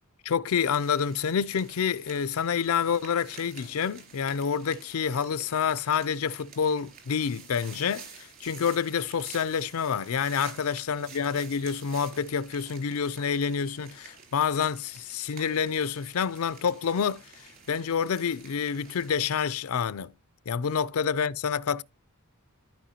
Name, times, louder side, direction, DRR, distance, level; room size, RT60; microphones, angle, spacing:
voice 1, 0.2-17.3 17.7-20.1 20.5-21.8, left 7 dB, 75° left, 0.4 m, -28 dB
sound 1, 0.6-19.4, right 5 dB, 45° right, 3.6 m, -50 dB
13.0 x 5.5 x 2.8 m
head